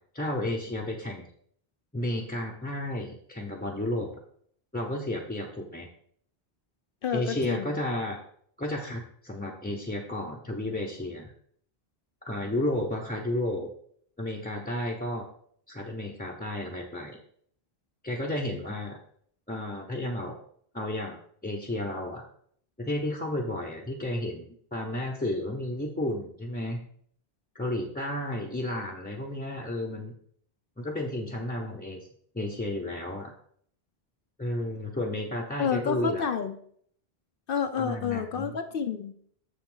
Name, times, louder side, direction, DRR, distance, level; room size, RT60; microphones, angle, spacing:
voice 1, 0.1-1.2 1.9-4.1 4.7-5.9 7.1-8.2 8.6-11.3 12.2-13.7 14.2-15.3 15.7-17.2 18.0-19.0 19.5-20.4 20.7-22.2 22.8-24.4 24.7-26.8 27.5-30.1 30.8-32.1 32.3-33.3 34.4-36.3 37.8-38.5, left 1 dB, 10° left, -2 dB, 0.7 m, -32 dB
voice 2, 7.0-7.8 35.6-36.6 37.5-39.1, left 7 dB, 65° left, 8 dB, 0.8 m, -29 dB
7.3 x 7.0 x 3.8 m, 0.62 s
omnidirectional pair, 1.0 m